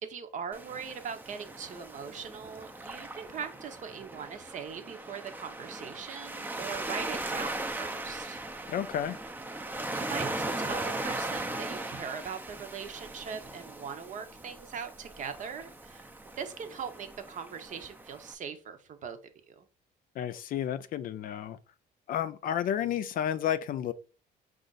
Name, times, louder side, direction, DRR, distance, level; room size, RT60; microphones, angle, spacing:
voice 1, 0.0-8.4 9.9-16.1 16.4-19.2 19.5-19.6, right 7 dB, 50° right, 0.8 m, -40 dB
Waves surf, 0.5-18.3, right 2 dB, 10° right, 0.5 m, -39 dB
voice 2, 8.7-9.2 20.2-21.6 22.1-23.9, left 10 dB, 55° left, 0.4 m, -31 dB
5.0 x 2.5 x 3.9 m
cardioid pair, 110°, 17 cm